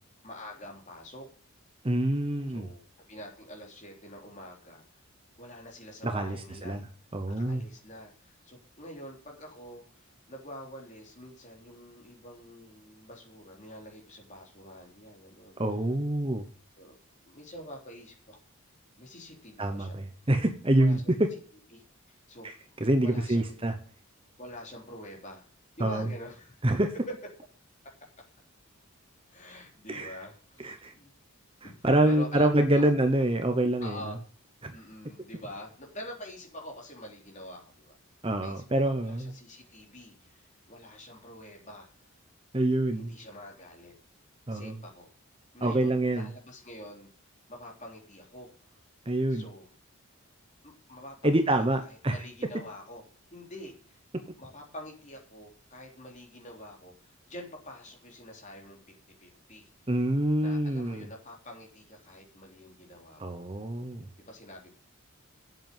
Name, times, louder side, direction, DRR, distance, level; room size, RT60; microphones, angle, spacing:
voice 1, 0.2-1.3 2.5-2.8 3.1-4.8 5.4-6.8 7.3-15.6 16.8-17.0 17.2-18.4 19.0-20.0 20.8-21.0 21.7-22.5 23.0-23.6 24.4-25.5 25.8-26.6 29.3-31.1 31.6-31.7 32.0-32.9 33.8-34.2 34.7-37.9 38.4-42.1 42.9-43.9 44.5-45.1 45.5-47.1 47.5-48.5 49.3-49.7 50.6-53.0 53.3-54.0 54.4-58.8 59.2-59.7 60.4-63.4 64.2-64.7, left 1 dB, 30° left, 0 dB, 3.4 m, -46 dB
voice 2, 1.8-2.7 6.0-6.8 7.1-7.6 15.6-16.5 19.6-21.0 22.4-22.5 22.8-23.7 25.8-26.1 26.6-26.9 29.9-30.2 30.6-30.9 31.6-34.2 34.6-34.7 38.2-39.3 42.5-43.1 44.5-44.8 45.6-46.3 49.1-49.5 51.2-52.2 59.9-61.1 63.2-64.1, right 1 dB, 25° right, 7 dB, 0.9 m, -26 dB
8.0 x 7.6 x 7.4 m, 0.44 s
head